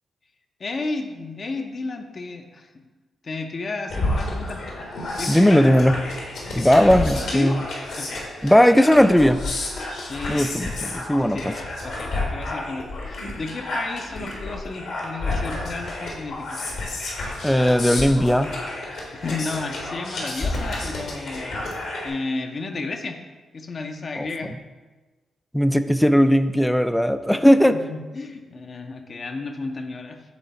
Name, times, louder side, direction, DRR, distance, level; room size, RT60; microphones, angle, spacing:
voice 1, 0.6-2.9 3.2-4.7 4.9-5.7 6.5-7.6 8.0-8.2 10.1-10.7 11.3-11.5 11.8-16.7 19.1-23.2 23.5-24.5 27.7-30.2, left 3 dB, 55° left, 4 dB, 0.6 m, -33 dB
sound 1, 3.9-22.1, left 2 dB, 75° left, 1.5 m, -30 dB
voice 2, 5.3-6.0 6.5-7.6 8.4-9.4 10.3-11.5 17.4-18.5 24.2-24.3 25.5-27.8, equal, 5° left, 10 dB, 0.4 m, -17 dB
7.1 x 3.4 x 4.2 m, 1.3 s
supercardioid pair, 50°, 0 cm